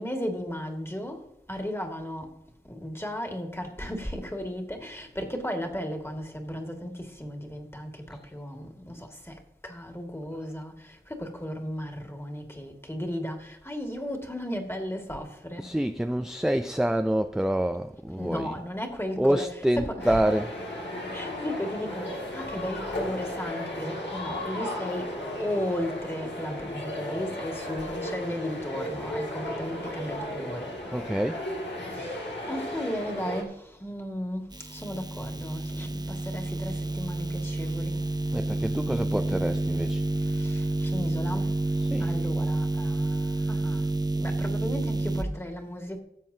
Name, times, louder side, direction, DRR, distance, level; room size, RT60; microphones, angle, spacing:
voice 1, 0.0-2.4 2.7-15.7 18.2-20.2 21.1-30.7 31.9-32.2 32.5-38.0 40.2-41.6 42.0-46.0, equal, 15° left, 2.0 m, -35 dB
voice 2, 15.6-18.5 19.2-20.5 30.9-31.4 38.3-40.0 41.8-42.1, right 1 dB, 5° right, 0.4 m, -27 dB
sound 1, 20.0-33.4, left 1 dB, 85° left, 2.3 m, -35 dB
sound 2, 34.5-45.2, right 2 dB, 20° right, 0.8 m, -29 dB
16.5 x 7.5 x 2.8 m
wide cardioid pair, 50°, 18 cm